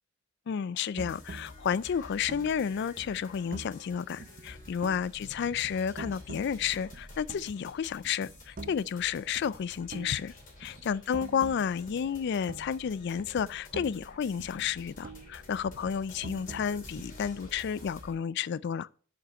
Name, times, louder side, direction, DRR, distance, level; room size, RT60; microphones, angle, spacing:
voice 1, 0.5-10.3 10.6-18.9, left 7 dB, 55° left, 0.3 m, -31 dB
sound 1, 0.9-3.9 4.2-5.2 5.5-7.7 8.0-9.0 9.4-12.9 13.2-15.4 15.7-17.5, right 3 dB, 45° right, 0.6 m, -46 dB
sound 2, 1.0-18.1, left 2 dB, 40° left, 2.9 m, -50 dB
6.9 x 5.2 x 6.4 m
head